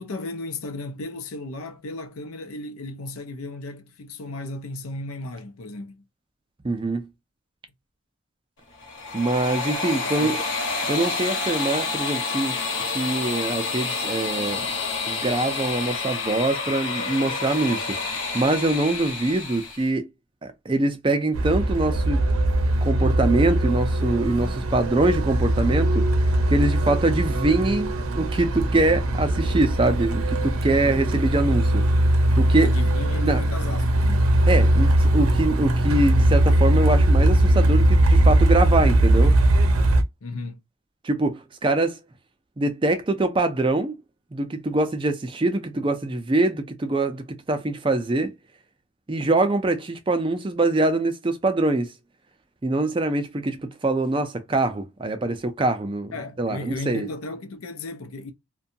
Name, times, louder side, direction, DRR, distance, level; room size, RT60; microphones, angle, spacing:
voice 1, 0.0-6.0 9.6-9.7 10.0-10.4 32.6-34.3 40.2-40.6 56.1-58.3, left 2 dB, 85° left, 0.6 m, -35 dB
voice 2, 6.6-7.1 9.1-10.4 10.9-14.7 15.1-20.1 20.4-22.2 22.8-31.8 32.4-32.7 33.2-33.4 34.5-39.4 41.0-42.0 42.6-44.0 44.3-48.3 49.1-51.9 52.6-57.1, right 2 dB, 25° right, 0.4 m, -24 dB
sound 1, 8.7-19.9, left 4 dB, 55° left, 0.9 m, -29 dB
Truck, 21.3-40.0, right 1 dB, 90° right, 0.6 m, -20 dB
2.7 x 2.2 x 2.6 m
head